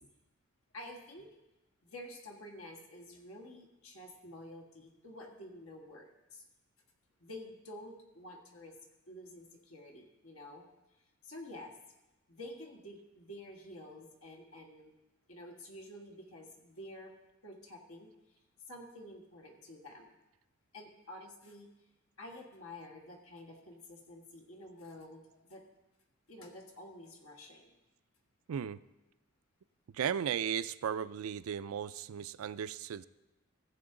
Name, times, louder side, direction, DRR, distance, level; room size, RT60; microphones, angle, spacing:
voice 1, 0.7-1.3 1.8-6.4 7.2-8.7 9.1-10.6 11.2-11.7 12.3-14.9 15.3-17.1 17.4-18.1 18.7-20.1 20.7-21.7 22.2-25.6 26.3-27.7, left 1 dB, 80° left, 2 dB, 1.6 m, -49 dB
voice 2, 29.9-33.1, right 8 dB, 90° right, 16 dB, 0.4 m, -35 dB
14.5 x 7.9 x 3.8 m, 0.98 s
head